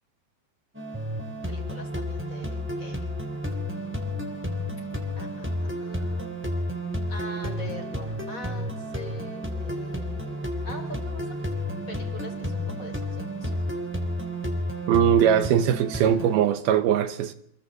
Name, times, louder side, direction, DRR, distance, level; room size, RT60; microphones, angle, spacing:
sound 1, 0.7-16.3, equal, 5° right, 2.5 m, -31 dB
voice 1, 1.5-3.1 3.4-4.2 5.2-5.5 5.8-6.3 7.1-11.5 11.9-13.6, left 1 dB, 20° left, 4.7 m, -43 dB
voice 2, 14.9-17.3, right 9 dB, 80° right, 2.9 m, -21 dB
29.5 x 22.5 x 4.1 m
omnidirectional pair, 4.5 m